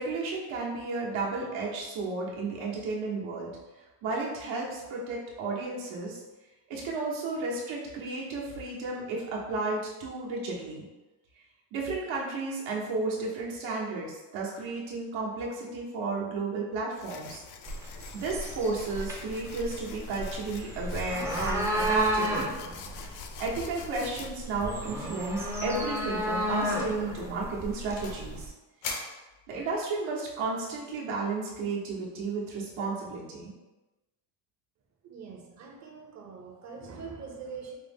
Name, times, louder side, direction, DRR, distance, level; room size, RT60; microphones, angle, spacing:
voice 1, 0.0-3.5 4.0-6.2 6.7-10.8 11.7-17.4 18.1-22.6 23.1-28.5 29.5-33.5, right 3 dB, 80° right, -3 dB, 1.2 m, -33 dB
sound 1, 17.0-24.3, left 7 dB, 60° left, 0.5 m, -46 dB
sound 2, 17.6-28.5, right 1 dB, 5° right, 0.4 m, -33 dB
sound 3, 24.0-24.3 24.6-24.8 25.1-25.2 25.7-26.0 26.4-26.6 27.1-28.3 28.8-29.8, left 3 dB, 85° left, 1.1 m, -41 dB
voice 2, 35.0-37.7, right 5 dB, 35° right, 1 dB, 0.7 m, -43 dB
5.2 x 2.0 x 3.5 m, 1.1 s
cardioid pair, 145°, 47 cm